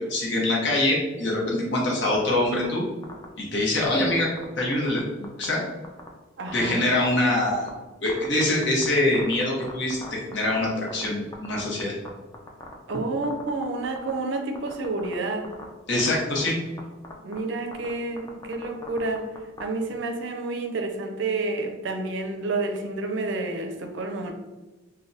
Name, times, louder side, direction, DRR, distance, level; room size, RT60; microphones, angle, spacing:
voice 1, 0.1-2.8 3.4-4.3 4.6-5.6 6.5-7.7 8.0-11.9 15.9-16.6, left 1 dB, 60° left, -3 dB, 0.9 m, -24 dB
sound 1, 2.1-2.6 3.0-3.2 3.8-5.0 5.2-5.4 5.8-6.1 6.5-6.6 6.9-7.7 8.1-11.1 11.3-12.1 12.3-13.0 13.2-14.1 14.5-15.1 15.4-15.6 16.0-16.5 16.8-16.9 17.0-17.4 17.7-19.6, left 2 dB, 20° left, 0.3 m, -39 dB
voice 2, 6.4-6.8 12.9-15.5 16.4-16.5 17.2-19.3 19.6-24.3, right 2 dB, 60° right, 4 dB, 0.4 m, -29 dB
3.3 x 2.2 x 2.6 m, 1.1 s
head